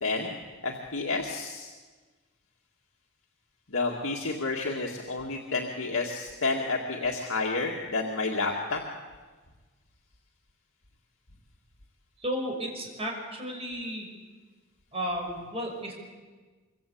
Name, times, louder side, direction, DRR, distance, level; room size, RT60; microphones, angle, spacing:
voice 1, 0.0-1.7 3.7-8.8, left 3 dB, 80° left, -1 dB, 2.2 m, -30 dB
voice 2, 12.2-14.1 14.9-15.9, equal, 30° right, 1 dB, 6.1 m, -33 dB
25.0 x 23.5 x 8.7 m, 1.4 s
head